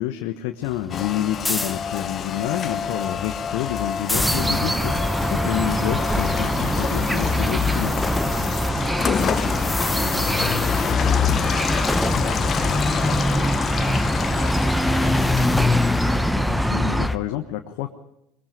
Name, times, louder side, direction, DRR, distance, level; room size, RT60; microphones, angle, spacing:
voice 1, 0.0-8.0 16.3-17.9, left 13 dB, 65° left, 5 dB, 1.3 m, -28 dB
sound 1, 0.6-8.7 9.0-17.2, left 2 dB, 10° left, 1.4 m, -27 dB
Rain, 0.9-16.3, left 8 dB, 40° left, 1.1 m, -27 dB
sound 2, 4.1-17.1, right 1 dB, 10° right, 0.8 m, -25 dB
voice 2, 8.4-15.7, right 1 dB, 50° right, 6 dB, 6.2 m, -42 dB
23.0 x 22.5 x 5.2 m, 0.80 s
hypercardioid pair, 65°, 0 cm